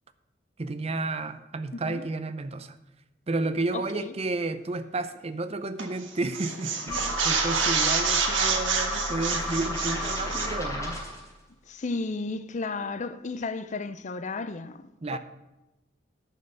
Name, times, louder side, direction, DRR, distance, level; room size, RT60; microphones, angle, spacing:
voice 1, 0.6-2.8 3.3-11.0 15.0-15.2, right 2 dB, 35° right, 0.6 m, -31 dB
voice 2, 1.7-2.1 3.7-4.1 11.7-15.2, left 3 dB, 40° left, 0.5 m, -34 dB
sound 1, 5.8-6.0 6.3-10.6, right 5 dB, 90° right, 1.5 m, -27 dB
sound 2, 6.9-11.3, left 1 dB, 20° left, 3.3 m, -33 dB
10.5 x 6.5 x 6.6 m
head